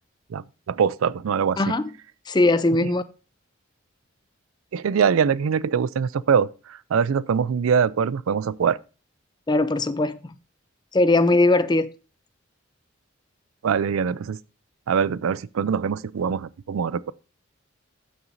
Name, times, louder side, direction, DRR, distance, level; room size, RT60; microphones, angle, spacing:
voice 1, 0.3-1.7 4.7-6.5 6.9-8.8 13.6-14.4 14.9-17.1, right 6 dB, 85° right, 0.4 m, -23 dB
voice 2, 1.6-1.9 2.3-3.0 9.5-10.4 10.9-11.9, left 2 dB, 20° left, 0.4 m, -20 dB
15.5 x 6.0 x 2.6 m
head